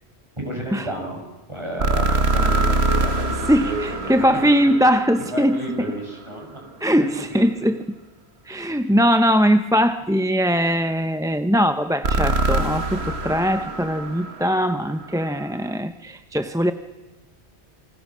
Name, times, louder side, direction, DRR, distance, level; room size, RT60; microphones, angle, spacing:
voice 1, 0.4-1.2 1.5-4.5 5.3-7.4, right 1 dB, 25° right, 1 dB, 7.3 m, -32 dB
sound 1, 1.8-5.9 12.0-15.2, right 2 dB, 70° right, 1.8 m, -24 dB
voice 2, 3.5-5.6 6.8-7.8 8.5-16.7, equal, 5° right, 8 dB, 0.7 m, -20 dB
28.5 x 26.0 x 6.2 m, 1.2 s
omnidirectional pair, 1.1 m